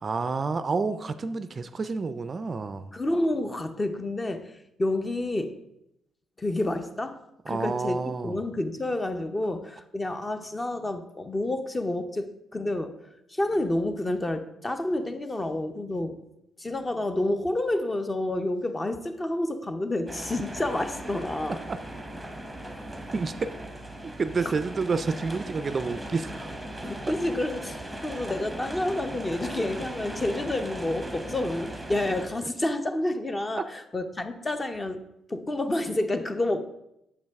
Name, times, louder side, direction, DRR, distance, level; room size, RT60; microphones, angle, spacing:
voice 1, 0.0-2.9 7.5-8.4 21.7-21.8 23.1-23.5 24.2-26.5 33.6-33.7, right 4 dB, 40° right, 11 dB, 0.3 m, -29 dB
voice 2, 2.9-5.6 6.4-7.2 7.5-8.0 8.2-12.9 13.3-16.2 16.6-21.6 22.7-22.9 24.4-24.5 26.8-35.0 35.3-36.6, left 1 dB, 20° left, 8 dB, 0.6 m, -29 dB
sound 1, 20.1-32.3, right 1 dB, 5° right, 0.9 m, -38 dB
7.0 x 5.2 x 3.5 m, 0.83 s
cardioid pair, 90°, 0 cm